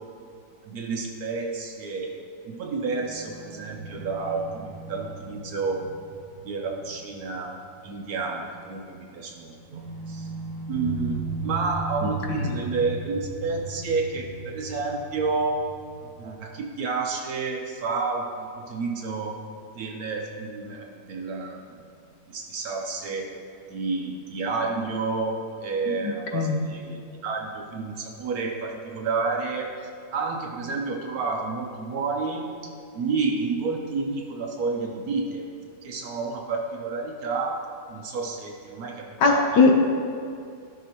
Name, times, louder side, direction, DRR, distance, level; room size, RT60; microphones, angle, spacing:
voice 1, 0.6-2.1 2.4-5.8 6.4-7.5 7.8-10.3 10.7-15.6 16.0-19.4 19.8-21.9 22.3-23.3 23.7-25.3 25.6-29.7 30.1-35.5 35.8-37.6 37.9-39.5, right 4 dB, 65° right, 2 dB, 1.0 m, -30 dB
sound 1, 2.7-8.1 8.4-8.5 9.7-16.3, right 2 dB, 45° right, 1.6 m, -37 dB
voice 2, 39.2-39.8, left 4 dB, 70° left, 2 dB, 1.4 m, -19 dB
13.0 x 5.9 x 2.9 m, 2.4 s
omnidirectional pair, 2.0 m